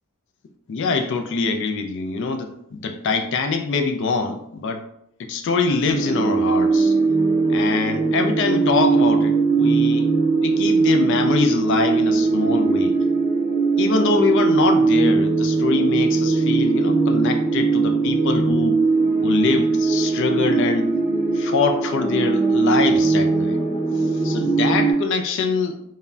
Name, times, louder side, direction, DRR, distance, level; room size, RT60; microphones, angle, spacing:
voice 1, 0.7-4.8 5.2-6.9 7.5-10.1 10.4-13.0 13.8-18.8 19.2-20.9 21.3-23.6 24.0-25.8, left 4 dB, 55° left, 6 dB, 0.3 m, -24 dB
sound 1, 5.9-24.9, right 4 dB, 25° left, 0.8 m, -20 dB
2.1 x 2.1 x 3.6 m, 0.75 s
head